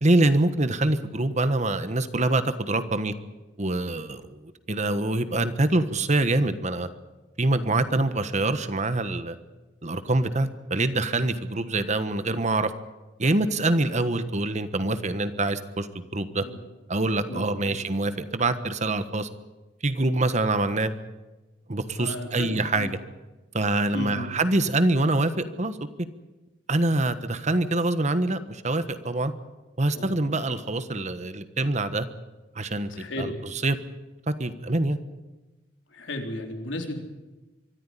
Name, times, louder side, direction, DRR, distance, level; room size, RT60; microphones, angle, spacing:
voice 1, 0.0-3.1 3.6-4.4 4.7-6.9 7.4-9.4 9.8-12.7 13.2-16.4 16.9-19.3 19.8-20.9 21.7-23.0 23.5-25.8 26.7-29.3 29.8-32.1 32.5-33.3 33.6-33.8 34.3-35.0, right 2 dB, 40° right, 11 dB, 1.3 m, -25 dB
voice 2, 17.3-17.8 21.9-22.9 23.9-24.3 29.9-30.2 32.9-33.4 35.9-37.0, left 1 dB, 85° left, 3 dB, 4.0 m, -34 dB
24.5 x 14.0 x 10.0 m, 1.1 s
head